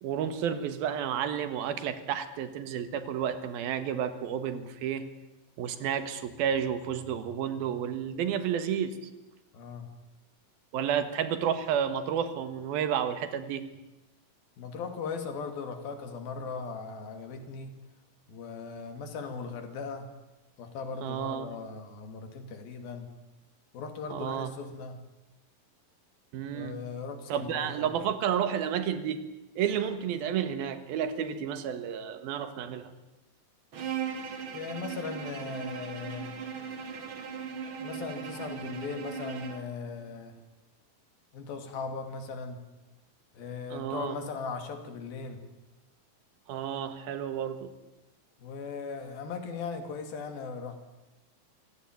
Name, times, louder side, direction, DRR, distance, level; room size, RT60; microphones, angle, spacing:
voice 1, 0.0-5.1 5.6-9.0 10.7-13.7 21.0-21.5 24.1-24.5 26.3-26.8 27.3-29.2 29.6-32.9 43.7-44.2 46.5-47.7, right 8 dB, 90° right, 11 dB, 3.4 m, -31 dB
voice 2, 9.5-9.9 14.6-17.8 18.3-20.1 20.6-23.1 23.7-25.0 26.5-27.9 34.5-36.4 37.8-40.4 41.3-42.6 43.3-45.4 48.4-50.8, left 5 dB, 85° left, 7 dB, 4.4 m, -38 dB
Bowed string instrument, 33.7-39.7, right 7 dB, 40° right, 2.2 m, -38 dB
25.5 x 17.0 x 9.3 m, 1.0 s
omnidirectional pair, 4.1 m